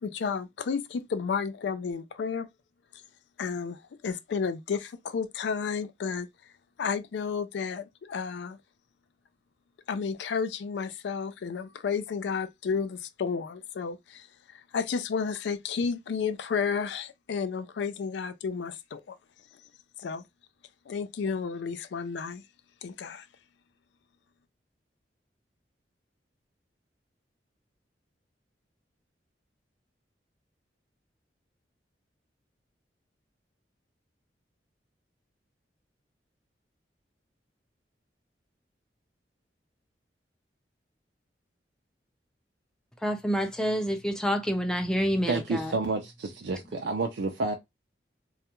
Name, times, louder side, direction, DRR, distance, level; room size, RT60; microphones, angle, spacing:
voice 1, 0.0-2.5 3.4-6.3 6.8-8.6 9.9-14.3 14.5-19.2 20.0-20.2 20.9-22.4 22.8-23.3, left 5 dB, 75° left, 0.4 m, -32 dB
voice 2, 43.0-45.7, equal, 5° left, 0.4 m, -28 dB
voice 3, 45.2-47.6, right 3 dB, 80° right, 0.4 m, -30 dB
2.3 x 2.2 x 2.9 m
head